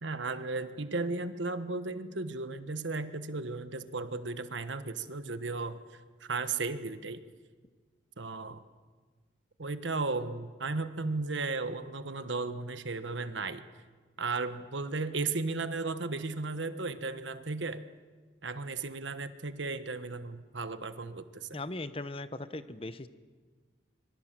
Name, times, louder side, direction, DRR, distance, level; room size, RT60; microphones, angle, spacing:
voice 1, 0.0-5.8 6.2-7.2 8.2-8.6 9.6-13.6 14.2-17.8 18.4-21.6, right 3 dB, 80° right, 11 dB, 1.3 m, -35 dB
voice 2, 21.5-23.1, left 2 dB, 30° left, 13 dB, 0.9 m, -38 dB
25.5 x 23.0 x 7.6 m, 1.5 s
head